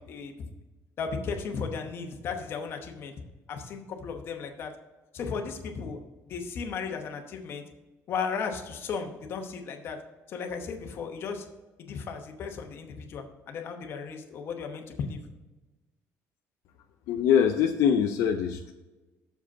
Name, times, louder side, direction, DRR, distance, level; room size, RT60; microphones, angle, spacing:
voice 1, 0.1-0.5 1.0-3.1 3.5-4.7 5.1-6.0 6.2-7.6 8.1-10.0 10.3-11.4 11.8-15.2, left 5 dB, 45° left, 5 dB, 1.0 m, -35 dB
voice 2, 17.1-18.7, left 8 dB, 70° left, 5 dB, 0.5 m, -23 dB
6.8 x 5.0 x 5.9 m, 1.1 s
cardioid pair, 175°, 6 cm